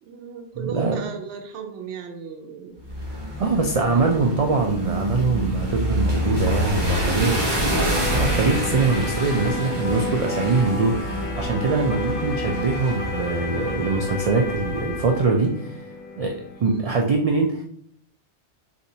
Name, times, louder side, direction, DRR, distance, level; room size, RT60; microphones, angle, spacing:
voice 1, 0.0-2.8 3.8-4.4 6.9-8.3 16.6-17.0, right 6 dB, 90° right, 4 dB, 0.9 m, -36 dB
sound 1, 2.8-15.0, equal, 25° right, 1.1 m, -27 dB
voice 2, 3.1-7.3 8.1-15.9 16.2-17.6, right 3 dB, 70° right, 1 dB, 0.3 m, -23 dB
sound 2, 7.9-16.6, left 3 dB, 50° left, 1.1 m, -31 dB
4.0 x 3.4 x 2.7 m, 0.68 s
omnidirectional pair, 1.2 m